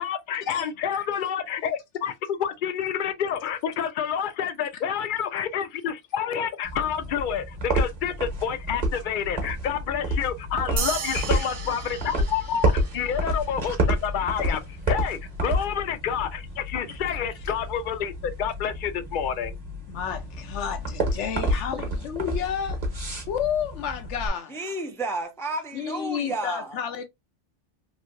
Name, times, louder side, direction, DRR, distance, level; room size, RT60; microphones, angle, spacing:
voice 1, 0.0-19.6, left 8 dB, 60° left, 0.6 m, -29 dB
sound 1, 6.6-24.3, right 1 dB, 40° right, 1.0 m, -30 dB
sound 2, 10.8-13.5, right 5 dB, 80° right, 0.9 m, -34 dB
voice 2, 11.1-11.9 16.9-17.2 19.9-22.8 23.3-24.5 25.7-27.0, left 8 dB, 85° left, 0.9 m, -31 dB
voice 3, 24.5-27.0, right 2 dB, 5° left, 0.3 m, -32 dB
3.1 x 2.6 x 2.5 m
omnidirectional pair, 1.2 m